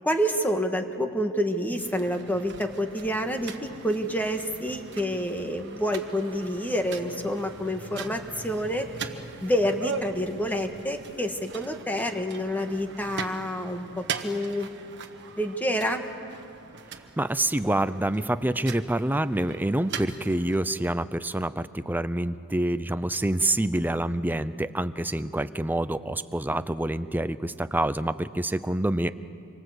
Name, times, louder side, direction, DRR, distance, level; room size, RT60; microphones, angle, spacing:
voice 1, 0.0-8.9 9.4-14.7 15.4-16.0, equal, 10° left, 5 dB, 1.6 m, -28 dB
sound 1, 1.8-20.6, right 5 dB, 55° right, 1.4 m, -41 dB
voice 2, 17.2-29.1, right 1 dB, 10° right, 12 dB, 0.6 m, -27 dB
27.0 x 24.0 x 8.1 m, 2.5 s
head